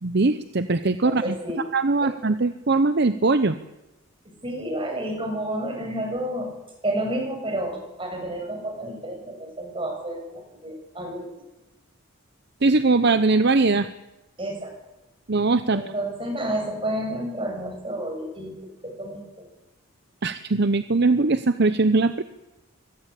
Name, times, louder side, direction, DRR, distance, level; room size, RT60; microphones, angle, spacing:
voice 1, 0.0-1.3 1.7-3.5 12.6-13.9 15.3-15.8 20.2-22.2, right 3 dB, 50° right, 11 dB, 0.8 m, -21 dB
voice 2, 1.0-1.6 2.0-2.1 4.2-6.5 6.8-11.5 14.4-14.8 15.7-18.5 18.8-19.5, right 1 dB, 25° right, 3 dB, 7.0 m, -30 dB
24.5 x 18.5 x 8.3 m, 0.99 s
head